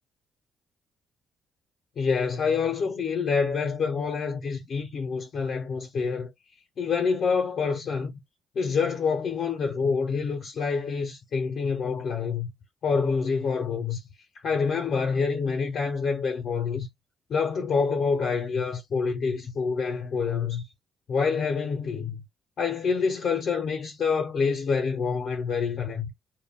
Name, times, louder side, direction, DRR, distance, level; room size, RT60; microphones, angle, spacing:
voice 1, 2.0-6.3 6.8-8.2 8.6-12.5 12.8-14.0 14.4-16.9 17.3-20.6 21.1-22.2 22.6-26.1, left 5 dB, 60° left, 0.6 m, -27 dB
2.2 x 2.1 x 3.5 m
cardioid pair, 90°, 0 cm